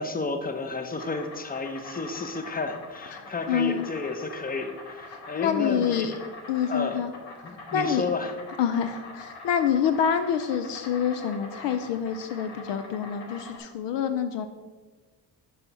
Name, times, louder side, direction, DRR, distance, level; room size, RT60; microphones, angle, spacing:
voice 1, 0.0-6.2 6.7-7.0 7.4-8.3, left 3 dB, 20° left, 6 dB, 0.8 m, -32 dB
Insect, 0.6-13.6, left 2 dB, 85° left, 1.0 m, -44 dB
voice 2, 3.1-3.8 5.3-6.1 6.5-7.1 7.7-8.0 8.6-14.5, left 8 dB, 60° left, 9 dB, 0.6 m, -27 dB
5.5 x 5.3 x 4.6 m, 1.4 s
hypercardioid pair, 40°, 48 cm